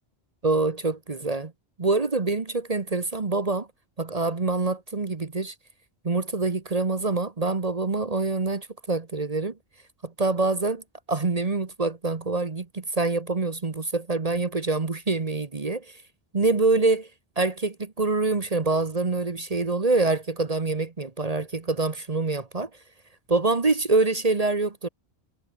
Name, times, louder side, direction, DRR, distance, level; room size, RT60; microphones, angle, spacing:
voice 1, 0.4-1.5 1.8-3.7 4.0-5.5 6.0-9.5 10.0-15.9 16.3-17.1 17.4-22.7 23.3-24.9, right 3 dB, 35° right, 1.2 m, -25 dB
omnidirectional pair, 1.1 m